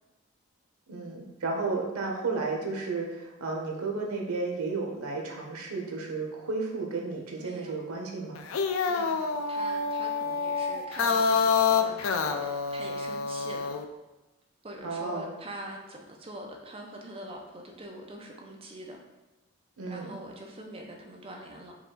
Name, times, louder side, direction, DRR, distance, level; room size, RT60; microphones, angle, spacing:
voice 1, 0.9-8.4 14.8-15.3 19.8-20.2, right 3 dB, 90° right, 1 dB, 0.8 m, -33 dB
voice 2, 7.4-7.8 8.9-13.7 14.6-19.0 19.9-21.7, right 1 dB, 25° right, 1 dB, 0.5 m, -44 dB
sound 1, 8.4-13.8, left 5 dB, 70° left, 0.3 m, -27 dB
4.7 x 2.4 x 3.7 m, 1.0 s
head